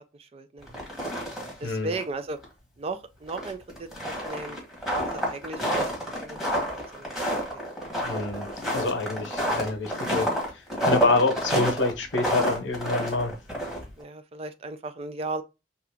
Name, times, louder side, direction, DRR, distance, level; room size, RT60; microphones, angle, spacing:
voice 1, 0.2-0.8 1.6-2.4 2.8-4.6 5.1-5.9 6.2-7.6 14.0-15.4, right 3 dB, 35° right, 0.3 m, -36 dB
sound 1, 0.6-1.7 1.9-2.0 2.4-2.5 3.3-14.0, equal, ahead, 1.1 m, -29 dB
voice 2, 1.6-1.9 8.0-8.4 8.7-13.3, left 3 dB, 90° left, 0.8 m, -27 dB
2.9 x 2.4 x 3.4 m
head